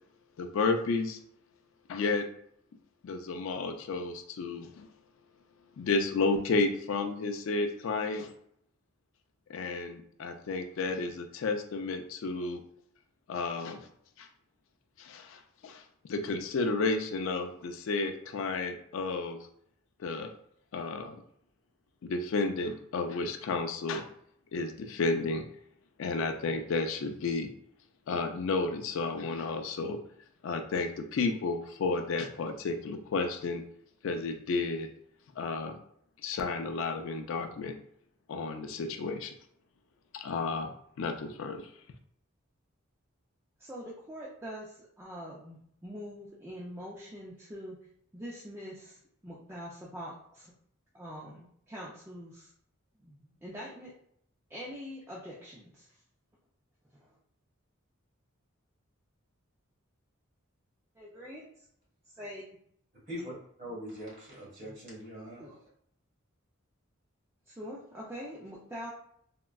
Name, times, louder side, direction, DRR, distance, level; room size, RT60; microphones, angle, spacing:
voice 1, 0.4-1.2 1.9-2.3 3.0-4.9 5.8-8.3 9.5-12.6 13.3-13.8 14.2-14.3 15.0-19.4 20.0-20.3 20.7-21.2 22.0-24.0 24.5-25.4 26.0-27.5 28.1-30.0 30.4-33.6 34.0-34.9 35.4-35.8 36.2-37.8 38.3-39.3 40.1-40.7 41.0-41.7, left 3 dB, 65° left, 6 dB, 0.3 m, -32 dB
voice 2, 43.6-47.8 48.1-50.5 50.9-52.5 53.0-53.9 54.5-55.9 57.0-57.1 61.0-61.6 62.1-62.4 64.6-64.8 65.4-65.6 67.5-68.9, equal, 10° right, -6 dB, 0.4 m, -44 dB
voice 3, 63.1-65.4, equal, 40° right, -6 dB, 1.5 m, -42 dB
3.6 x 2.1 x 2.2 m, 0.68 s
head